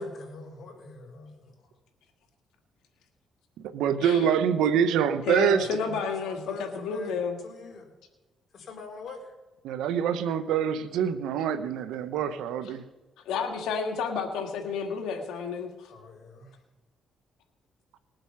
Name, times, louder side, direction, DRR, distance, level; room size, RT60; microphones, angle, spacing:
voice 1, 0.0-1.6 5.6-7.1 7.4-7.9 8.5-9.3 15.9-16.6, left 3 dB, 55° left, 1 dB, 3.8 m, -44 dB
voice 2, 3.7-5.8 9.6-12.8, right 8 dB, 90° right, 11 dB, 0.9 m, -25 dB
voice 3, 5.2-7.4 13.3-15.9, left 5 dB, 90° left, 3 dB, 1.8 m, -31 dB
20.0 x 7.9 x 5.8 m, 1.2 s
cardioid pair, 90°, 0 cm